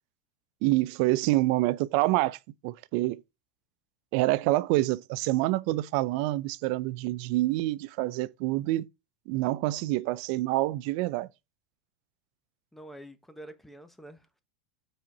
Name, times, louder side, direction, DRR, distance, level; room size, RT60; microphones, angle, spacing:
voice 1, 0.6-2.4 2.6-3.2 4.1-8.9 9.3-11.3, right 18 dB, 60° right, 0.5 m, -27 dB
voice 2, 12.7-14.4, right 1 dB, 5° left, 1.0 m, -47 dB
6.0 x 4.3 x 4.7 m
supercardioid pair, 120°, 5 cm